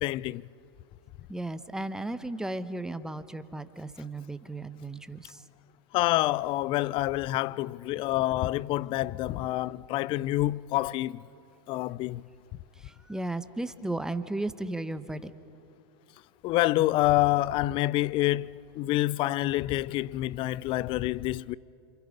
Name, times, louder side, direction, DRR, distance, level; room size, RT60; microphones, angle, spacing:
voice 1, 0.0-0.5 5.9-11.3 11.7-12.2 16.4-21.6, left 16 dB, 40° left, 0.5 m, -27 dB
voice 2, 1.3-5.4 12.8-15.3, right 2 dB, 5° right, 1.1 m, -35 dB
28.0 x 27.5 x 5.3 m
hypercardioid pair, 95°, 14 cm